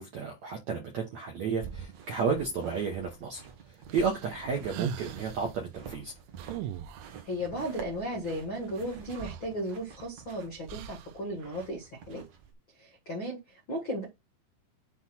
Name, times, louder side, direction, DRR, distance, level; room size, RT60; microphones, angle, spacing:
voice 1, 0.0-6.1, right 5 dB, 70° right, 1.6 m, -32 dB
sound 1, 1.6-12.5, right 7 dB, 55° right, 2.0 m, -47 dB
sound 2, 3.9-5.5 6.4-7.3 8.8-8.9 9.1-10.1 10.7-11.2, right 10 dB, 85° right, 3.2 m, -40 dB
voice 2, 7.2-12.2 12.8-14.0, equal, 75° left, 1.1 m, -35 dB
8.1 x 3.5 x 6.1 m
omnidirectional pair, 5.5 m